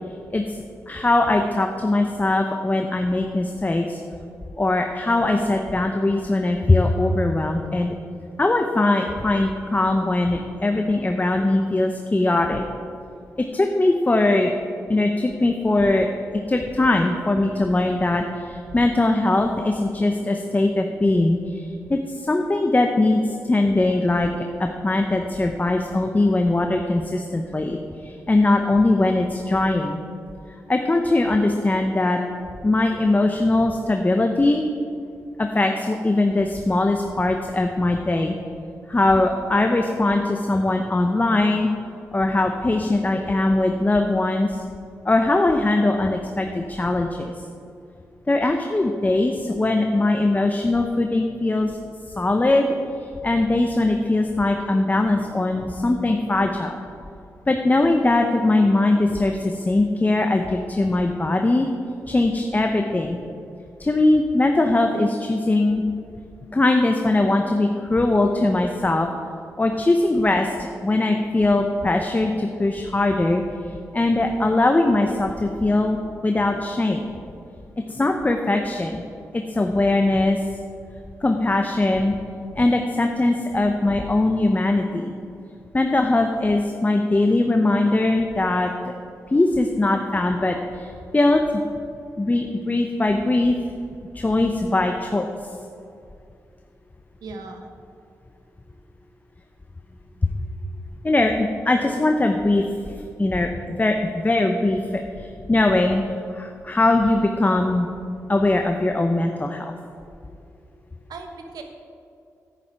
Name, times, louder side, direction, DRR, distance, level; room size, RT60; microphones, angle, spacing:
voice 1, 0.9-4.0 4.6-7.9 8.4-12.6 13.5-14.5 14.9-16.1 16.5-30.0 30.7-32.2 32.6-34.6 35.4-38.4 38.9-41.7 42.1-44.6 45.0-47.3 48.3-51.7 52.2-52.7 53.2-56.7 57.5-61.7 62.1-63.2 63.8-65.8 66.5-69.1 69.6-73.4 73.9-77.1 77.9-79.0 79.3-80.4 81.2-82.2 82.6-85.1 85.7-88.7 89.3-91.6 92.2-93.6 94.1-95.3 100.2-100.3 101.0-102.6 103.2-103.5 103.8-103.9 104.2-106.0 106.3-107.9 108.3-109.7, left 2 dB, 25° left, 4 dB, 0.8 m, -21 dB
voice 2, 97.2-97.6 111.1-111.6, right 3 dB, 80° right, 5 dB, 1.1 m, -37 dB
10.0 x 9.6 x 4.7 m, 2.6 s
supercardioid pair, 45°, 7 cm